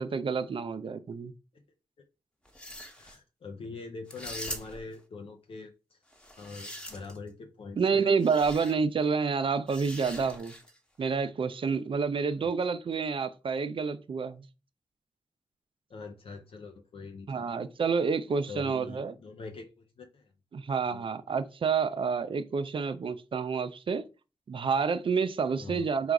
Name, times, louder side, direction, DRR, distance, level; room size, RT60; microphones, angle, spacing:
voice 1, 0.0-1.3 7.8-10.5 11.0-14.5 17.3-19.1 20.5-24.0 24.5-26.1, right 5 dB, 60° right, 0.5 m, -29 dB
sound 1, 2.5-3.2 4.1-5.0 6.1-7.3 8.2-8.7 9.7-10.8, equal, 10° left, 1.1 m, -42 dB
voice 2, 3.0-6.0 6.4-8.1 15.9-17.5 18.5-20.3 20.9-21.0 25.6-25.9, left 3 dB, 70° left, 0.6 m, -43 dB
3.9 x 2.4 x 4.6 m
cardioid pair, 45°, 10 cm